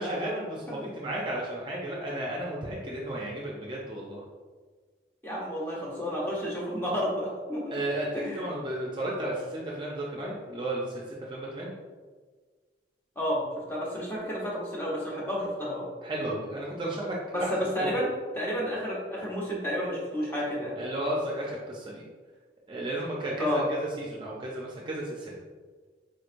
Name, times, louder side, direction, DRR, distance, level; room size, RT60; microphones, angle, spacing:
voice 1, 0.0-4.2 7.7-11.7 16.0-18.0 20.8-22.0 22.7-25.3, right 1 dB, 25° right, -4 dB, 0.5 m, -33 dB
voice 2, 5.2-7.7 8.1-8.4 13.2-13.4 13.7-15.9 17.3-18.1 18.3-20.8 23.4-23.7, equal, 10° left, -5 dB, 0.8 m, -31 dB
4.2 x 3.1 x 2.5 m, 1.5 s
head